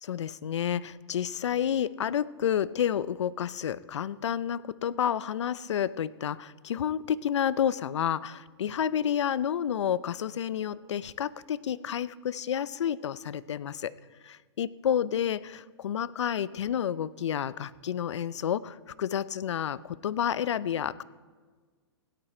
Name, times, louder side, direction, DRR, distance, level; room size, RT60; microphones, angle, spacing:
voice 1, 0.0-13.9 14.2-21.0, left 9 dB, 85° left, 18 dB, 0.5 m, -30 dB
17.0 x 11.5 x 4.4 m, 1.5 s
hypercardioid pair, 160°, 15 cm